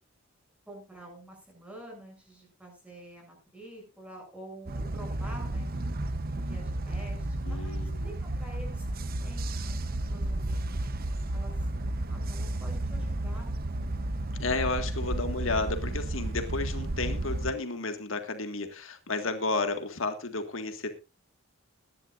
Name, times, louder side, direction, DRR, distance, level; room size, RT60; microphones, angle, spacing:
voice 1, 0.7-5.7 6.3-8.9 9.2-10.8 11.3-11.7 12.1-13.5, right 1 dB, 5° right, -1 dB, 7.8 m, -48 dB
sound 1, 4.7-17.5, right 1 dB, 45° right, 0.9 m, -32 dB
voice 2, 7.5-8.0 14.4-20.9, left 3 dB, 75° left, 6 dB, 1.8 m, -32 dB
21.5 x 11.0 x 2.5 m, 0.29 s
head